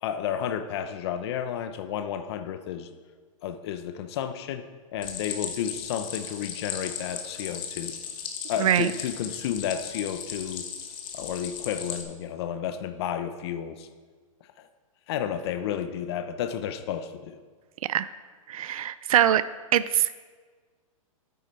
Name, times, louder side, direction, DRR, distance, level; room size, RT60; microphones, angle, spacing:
voice 1, 0.0-2.9 3.4-4.6 4.9-7.9 8.5-10.7 11.1-13.9 14.6-14.7 15.1-17.4, left 9 dB, 45° left, 9 dB, 0.8 m, -32 dB
Stream, 5.0-12.0, left 7 dB, 25° left, 1.3 m, -37 dB
voice 2, 18.5-19.4 19.7-20.1, right 11 dB, 75° right, 15 dB, 0.5 m, -23 dB
12.5 x 9.4 x 4.3 m, 1.5 s
hypercardioid pair, 155°, 18 cm